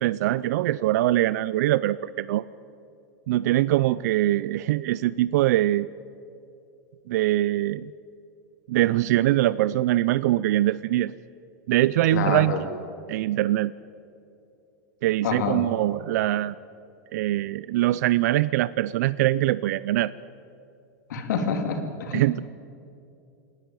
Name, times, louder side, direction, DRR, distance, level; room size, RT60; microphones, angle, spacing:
voice 1, 0.0-2.4 3.3-5.9 7.1-7.9 8.7-11.1 11.7-12.5 13.1-13.7 15.0-16.6 17.1-20.1 22.1-22.4, right 15 dB, 70° right, 17 dB, 0.4 m, -23 dB
voice 2, 12.1-12.6 15.2-15.6 21.1-22.3, left 6 dB, 85° left, 5 dB, 3.1 m, -27 dB
27.5 x 10.5 x 9.2 m, 2.6 s
supercardioid pair, 140°, 9 cm